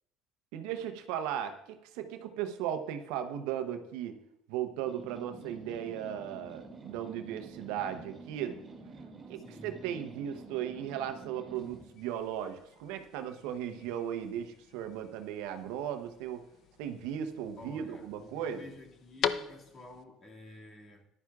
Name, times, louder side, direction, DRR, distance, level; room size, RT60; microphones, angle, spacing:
voice 1, 0.5-4.2 4.5-8.6 9.3-16.4 16.8-18.6, right 10 dB, 75° right, 0.8 m, -37 dB
sound 1, 4.9-11.9, right 3 dB, 25° right, 2.3 m, -49 dB
voice 2, 9.4-9.8 17.6-21.0, left 2 dB, 40° left, 2.2 m, -50 dB
sound 2, 11.5-20.0, left 8 dB, 55° left, 0.5 m, -42 dB
14.5 x 11.0 x 2.4 m
supercardioid pair, 75°, 0 cm